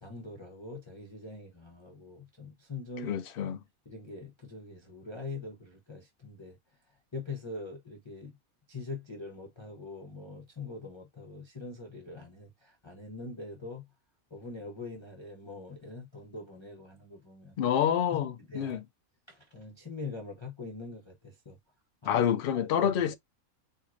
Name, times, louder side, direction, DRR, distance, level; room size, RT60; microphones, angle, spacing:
voice 1, 0.0-3.5 3.8-6.6 7.1-8.4 8.7-13.9 14.3-17.6 18.1-18.8 19.3-21.6 22.0-22.1 22.5-23.1, left 3 dB, 25° left, 0.7 m, -43 dB
voice 2, 3.0-3.6 17.6-18.8 22.1-23.1, left 9 dB, 70° left, 0.5 m, -28 dB
4.6 x 2.5 x 2.4 m
omnidirectional pair, 1.5 m